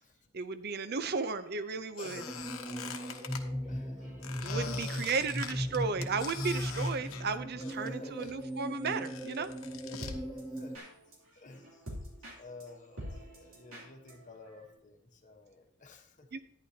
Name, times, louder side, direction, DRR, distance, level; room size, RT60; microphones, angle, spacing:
voice 1, 0.3-2.2 4.4-9.5 16.3-16.4, right 4 dB, 50° right, 11 dB, 0.6 m, -34 dB
sound 1, 1.0-14.7, equal, 80° right, 3.1 m, -51 dB
Squeak, 2.0-3.4 4.2-7.9 8.2-10.2, left 7 dB, 85° left, 1.0 m, -44 dB
sound 2, 2.1-10.8, equal, ahead, 0.6 m, -38 dB
voice 2, 2.8-3.1 3.7-4.2 4.4-5.3 7.6-8.3 9.8-10.8 11.3-16.3, left 3 dB, 40° left, 4 dB, 1.1 m, -52 dB
11.5 x 10.5 x 2.8 m, 0.69 s
head